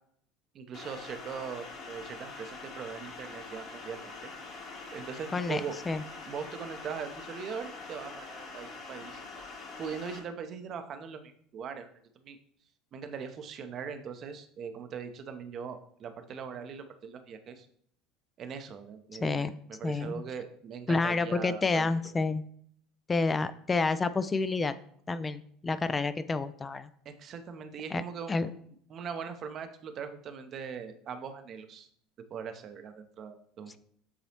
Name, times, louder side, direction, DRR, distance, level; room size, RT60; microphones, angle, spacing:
voice 1, 0.5-4.3 4.9-5.7 6.3-9.2 9.8-11.9 12.2-12.4 12.9-17.7 18.4-21.9 27.0-28.6 28.9-31.9 32.3-33.8, right 6 dB, 40° right, 8 dB, 0.7 m, -40 dB
sound 1, 0.7-10.2, left 3 dB, 45° left, 1.5 m, -44 dB
voice 2, 19.2-19.5 19.8-20.1 20.9-22.4 23.1-24.7 25.1-26.9 27.9-28.0 28.3-28.5, left 3 dB, 20° left, 12 dB, 0.4 m, -29 dB
8.3 x 3.9 x 3.0 m, 0.63 s
figure-of-eight pair, 70°, 0 cm